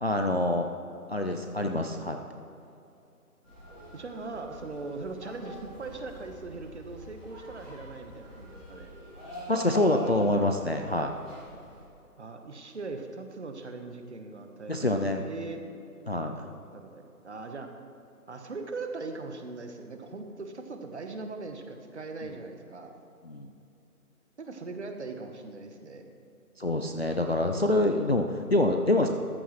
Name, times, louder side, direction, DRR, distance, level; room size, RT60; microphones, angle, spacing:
voice 1, 0.0-0.7 1.1-2.2 9.5-11.1 14.7-15.2 16.1-16.5 23.3-23.5 26.6-29.1, left 1 dB, 45° left, 4 dB, 0.5 m, -26 dB
sound 1, 3.4-11.8, left 1 dB, ahead, 1.3 m, -45 dB
voice 2, 3.9-8.9 12.2-15.6 16.7-17.7 18.3-23.0 24.4-26.1, right 3 dB, 50° right, 5 dB, 1.2 m, -40 dB
14.0 x 13.5 x 3.2 m, 2.7 s
hypercardioid pair, 175°, 45 cm